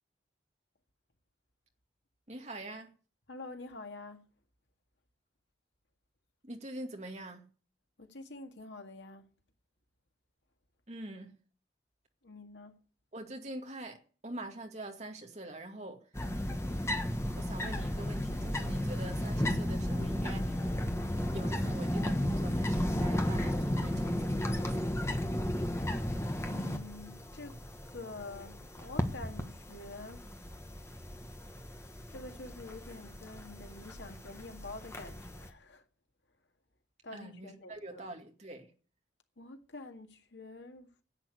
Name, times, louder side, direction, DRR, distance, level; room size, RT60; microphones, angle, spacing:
voice 1, 2.3-2.9 6.4-7.5 10.9-11.4 13.1-16.0 17.3-20.6 21.3-25.0 37.1-38.7, right 1 dB, 35° right, 2.2 m, -45 dB
voice 2, 3.3-4.2 8.0-9.3 12.2-12.8 26.4-27.6 27.9-30.2 32.1-35.8 37.0-38.1 39.4-40.9, left 2 dB, 80° left, 1.9 m, -47 dB
sound 1, 16.1-35.5, left 1 dB, 15° left, 1.4 m, -34 dB
10.5 x 8.8 x 9.6 m
head